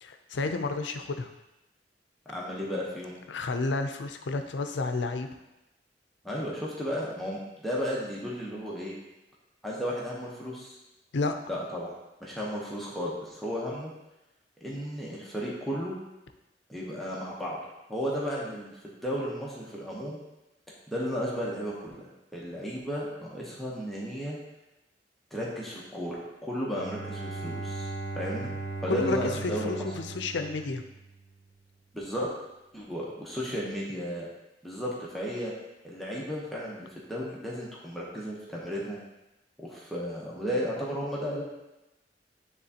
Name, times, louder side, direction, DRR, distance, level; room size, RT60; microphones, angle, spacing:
voice 1, 0.0-1.3 3.3-5.3 11.1-11.3 28.9-30.8, left 3 dB, 80° left, 7 dB, 0.5 m, -31 dB
voice 2, 2.3-3.2 6.2-8.9 9.6-10.8 11.5-13.9 14.6-15.9 16.7-17.6 17.9-18.7 19.0-20.2 20.9-22.0 22.3-24.4 25.3-27.9 28.1-28.5 28.8-29.8 31.9-32.3 32.7-34.3 34.6-35.5 35.8-39.0 39.6-41.4, equal, ahead, -6 dB, 0.9 m, -34 dB
Bowed string instrument, 26.7-31.4, right 3 dB, 60° right, 1.2 m, -38 dB
9.1 x 3.6 x 2.8 m, 0.97 s
head